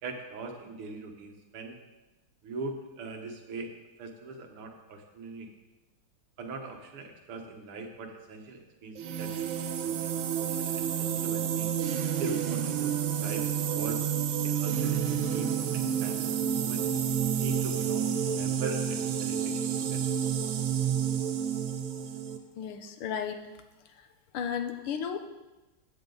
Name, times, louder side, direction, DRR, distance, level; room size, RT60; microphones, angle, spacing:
voice 1, 0.0-1.8 2.4-3.7 4.0-5.5 6.4-11.7 12.2-12.9 13.2-13.5 13.7-14.0 14.4-16.9 17.4-20.0, right 3 dB, 85° right, 3 dB, 2.3 m, -41 dB
sound 1, 9.0-22.4, right 8 dB, 70° right, 1.6 m, -29 dB
voice 2, 22.6-23.5 24.3-25.2, left 7 dB, 85° left, 7 dB, 1.8 m, -33 dB
15.0 x 9.0 x 4.0 m, 1.1 s
omnidirectional pair, 2.4 m